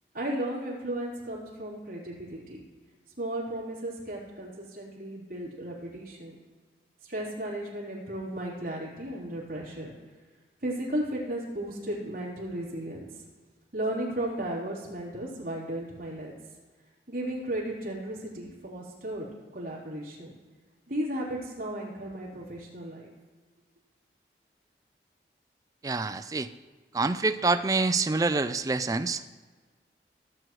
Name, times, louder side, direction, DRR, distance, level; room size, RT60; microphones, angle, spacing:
voice 1, 0.1-2.6 3.2-6.3 7.0-9.9 10.6-13.2 13.7-16.4 17.1-19.3 19.5-20.3 20.9-23.1, right 1 dB, 55° right, -6 dB, 3.6 m, -35 dB
voice 2, 25.8-26.5 26.9-29.3, right 3 dB, 20° right, 10 dB, 0.3 m, -26 dB
17.0 x 7.6 x 3.1 m, 1.4 s
head